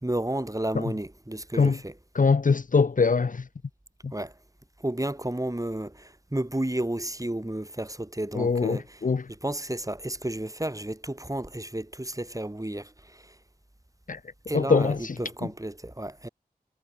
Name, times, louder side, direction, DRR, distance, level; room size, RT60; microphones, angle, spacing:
voice 1, 0.0-1.9 4.1-4.3 4.8-5.9 6.3-8.8 9.4-12.8 14.5-16.3, right 1 dB, 20° right, 2.8 m, -31 dB
voice 2, 2.2-3.4 4.0-4.1 8.3-9.3 14.1-14.2 14.5-15.1, left 4 dB, 55° left, 0.6 m, -23 dB
wide cardioid pair, 50°, 16 cm